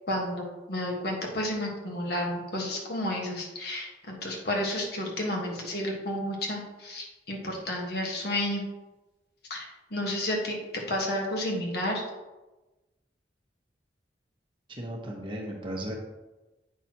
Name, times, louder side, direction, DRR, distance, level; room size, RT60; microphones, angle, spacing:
voice 1, 0.1-8.6 9.5-12.0, left 1 dB, 60° left, 0 dB, 1.6 m, -31 dB
voice 2, 14.7-15.9, right 1 dB, 30° right, -1 dB, 1.3 m, -35 dB
8.3 x 6.0 x 3.0 m, 1.1 s
head